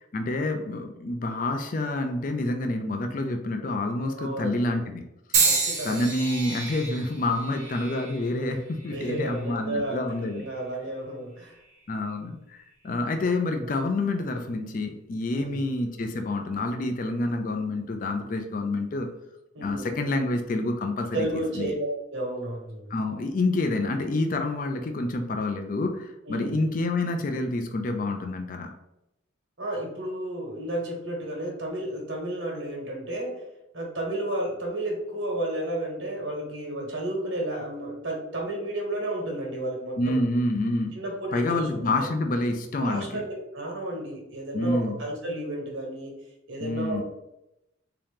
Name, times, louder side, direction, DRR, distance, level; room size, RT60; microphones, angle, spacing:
voice 1, 0.1-5.0 5.8-10.4 11.9-19.1 19.6-21.7 22.9-28.7 40.0-41.0 41.3-43.2 44.5-45.0 46.6-47.0, left 2 dB, 40° left, 5 dB, 0.4 m, -28 dB
voice 2, 4.2-4.8 5.4-6.0 8.9-10.0 10.3-11.5 15.3-15.6 19.5-19.9 21.1-22.9 26.3-26.6 29.6-33.4 33.7-40.2 40.9-42.1 42.8-43.3 43.5-46.2 46.5-47.0, right 1 dB, 75° right, 0 dB, 1.3 m, -32 dB
sound 1, 5.3-9.5 10.2-10.6 11.6-11.8, right 4 dB, 45° right, 0.9 m, -29 dB
3.6 x 2.9 x 3.5 m, 0.88 s
head